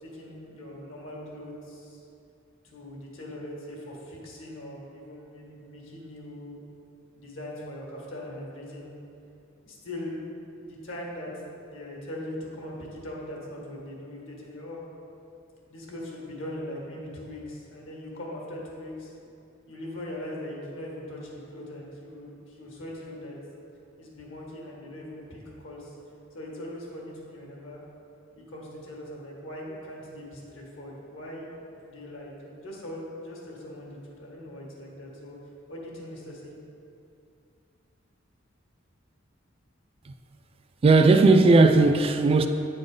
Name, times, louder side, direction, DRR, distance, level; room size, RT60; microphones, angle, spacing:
voice 1, 0.0-2.0 2.6-6.6 7.2-8.9 9.6-10.2 10.6-11.3 11.6-14.8 15.7-19.1 19.7-23.4 24.0-25.9 26.3-27.8 28.3-35.4 35.7-36.5, left 1 dB, 85° left, 1.6 m, -40 dB
voice 2, 40.8-42.5, right 3 dB, 30° right, 0.3 m, -17 dB
8.6 x 4.3 x 4.9 m
head